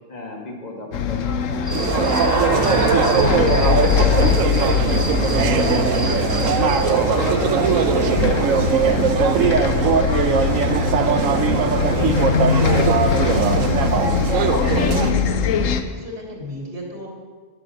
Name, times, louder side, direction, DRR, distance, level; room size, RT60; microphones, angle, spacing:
voice 1, 0.1-2.8 3.2-6.5 6.8-14.6, left 1 dB, 30° left, 0 dB, 1.9 m, -33 dB
Bus, 0.9-15.8, left 7 dB, 85° left, 1.1 m, -22 dB
Human voice / Cricket, 1.6-6.8, right 1 dB, 15° right, 1.6 m, -27 dB
sound 1, 1.7-15.1, right 7 dB, 85° right, 1.1 m, -20 dB
voice 2, 15.9-17.1, left 1 dB, 45° right, -1 dB, 3.2 m, -35 dB
11.0 x 7.9 x 7.0 m, 1.5 s
omnidirectional pair, 1.3 m